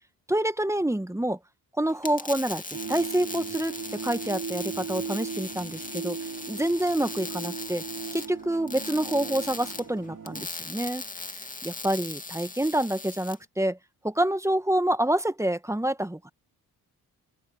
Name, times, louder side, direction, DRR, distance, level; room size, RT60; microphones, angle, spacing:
voice 1, 0.3-1.4 1.8-2.6 2.9-6.2 6.4-7.8 8.1-11.0 11.3-13.8 14.0-16.3, right 1 dB, 10° right, 1.4 m, -27 dB
sound 1, 1.9-13.4, left 3 dB, 20° left, 2.5 m, -39 dB
sound 2, 2.7-10.5, right 6 dB, 55° right, 4.2 m, -38 dB
open air
cardioid pair, 70°, 37 cm